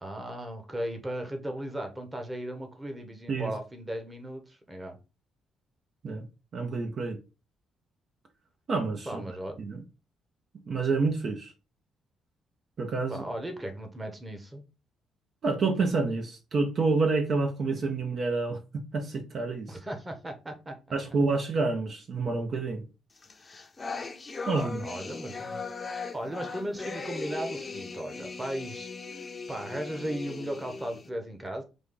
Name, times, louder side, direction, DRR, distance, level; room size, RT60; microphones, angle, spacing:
voice 1, 0.0-5.0 9.1-9.6 13.1-14.6 19.7-20.7 24.5-25.6 26.1-31.6, right 1 dB, 15° right, 1.1 m, -36 dB
voice 2, 6.5-7.2 8.7-9.2 9.6-9.8 10.7-11.5 12.8-13.3 15.4-18.6 18.9-19.8 20.9-22.8 24.5-24.8, right 3 dB, 50° right, 0.8 m, -28 dB
sound 1, 23.2-31.1, left 4 dB, 30° left, 0.7 m, -38 dB
5.1 x 2.4 x 3.9 m
cardioid pair, 90°, 0 cm